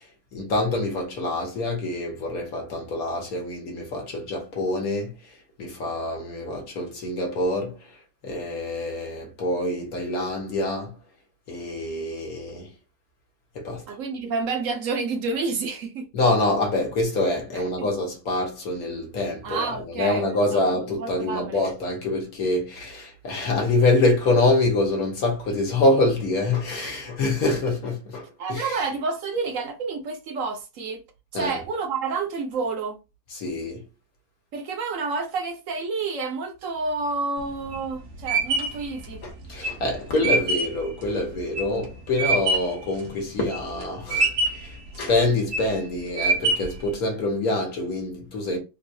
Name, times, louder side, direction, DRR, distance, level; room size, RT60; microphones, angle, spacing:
voice 1, 0.0-8.0 8.2-11.0 11.5-12.7 13.5-14.0 16.1-28.8 31.3-31.6 33.3-33.9 39.2-48.6, left 2 dB, 70° left, 1.4 m, -26 dB
voice 2, 13.9-16.1 17.5-17.6 19.4-20.7 21.0-21.6 28.4-31.0 31.3-33.0 34.5-39.2, right 4 dB, 60° right, 1.1 m, -29 dB
sound 1, 37.4-42.8 43.3-43.8 44.1-44.8 45.3-45.8 46.2-46.9, right 3 dB, 80° right, 1.4 m, -24 dB
3.7 x 2.3 x 2.6 m
omnidirectional pair, 1.6 m